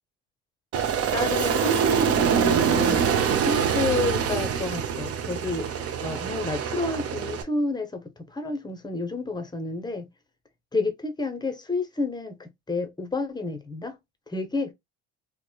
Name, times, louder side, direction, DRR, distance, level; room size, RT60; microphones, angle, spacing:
Aircraft, 0.7-7.4, right 7 dB, 45° right, 0.6 m, -24 dB
voice 1, 1.1-3.1 3.3-10.1 10.7-14.0 14.3-14.7, left 3 dB, 15° left, 0.6 m, -30 dB
2.9 x 2.1 x 2.2 m
supercardioid pair, 70°, 33 cm